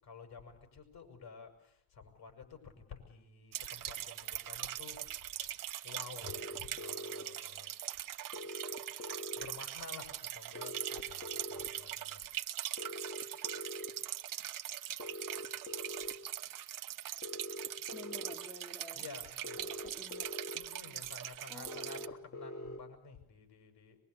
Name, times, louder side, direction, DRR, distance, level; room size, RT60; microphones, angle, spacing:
voice 1, 0.0-5.1 5.4-5.5 5.8-7.7 9.4-12.2 18.9-19.6 20.6-24.0, left 5 dB, 55° left, 6 dB, 7.2 m, -51 dB
sound 1, 3.5-22.1, right 12 dB, 45° right, 1.2 m, -42 dB
sound 2, 6.2-7.2 8.3-9.5 10.5-11.7 12.8-13.9 15.0-16.1 17.2-18.3 19.4-20.6 21.7-22.8, left 1 dB, 30° left, 2.5 m, -44 dB
voice 2, 17.9-19.1 19.6-20.3 21.5-22.0, left 1 dB, 10° left, 4 dB, 2.1 m, -52 dB
24.0 x 22.0 x 8.3 m, 0.73 s
hypercardioid pair, 70°, 44 cm